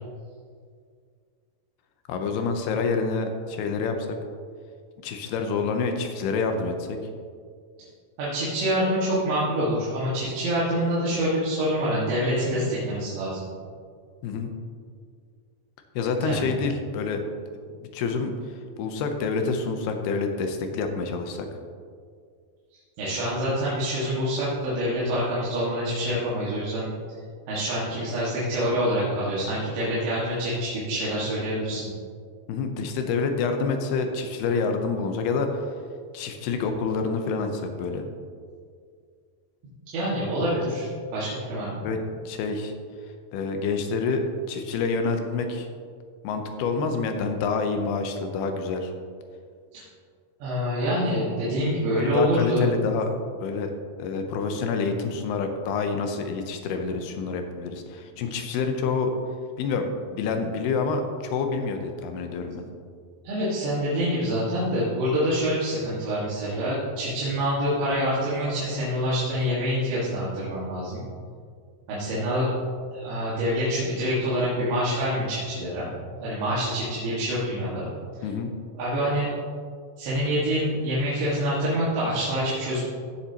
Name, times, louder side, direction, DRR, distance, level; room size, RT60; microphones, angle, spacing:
voice 1, 2.1-3.9 5.0-7.0 14.2-14.5 16.0-17.2 17.8-21.5 32.5-35.6 36.1-38.0 41.8-42.0 42.3-42.7 43.3-45.7 46.2-48.9 52.0-53.1 53.4-53.7 54.0-59.1 59.6-62.6 78.2-78.5, left 4 dB, 75° left, 5 dB, 2.6 m, -27 dB
voice 2, 8.2-13.5 16.2-16.5 23.0-26.9 27.5-31.9 39.9-41.8 49.7-49.8 50.4-52.7 63.2-71.0 71.9-72.5 72.9-75.9 76.2-77.9 78.8-79.3 80.0-82.8, equal, 85° right, -9 dB, 4.1 m, -26 dB
16.5 x 7.3 x 2.9 m, 2.1 s
omnidirectional pair, 5.0 m